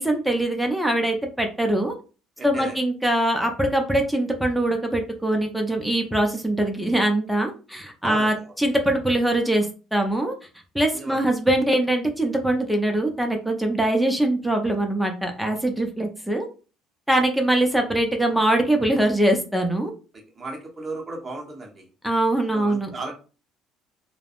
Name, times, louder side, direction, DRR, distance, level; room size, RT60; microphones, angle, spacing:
voice 1, 0.0-1.9 2.4-10.3 10.7-16.5 17.1-19.9 22.0-22.9, right 1 dB, ahead, 3 dB, 0.5 m, -22 dB
voice 2, 2.4-2.8 8.0-8.5 10.9-11.2 20.3-21.9 22.5-23.1, right 2 dB, 20° right, 0 dB, 0.8 m, -35 dB
3.3 x 2.0 x 2.4 m, 0.35 s
cardioid pair, 145°, 0 cm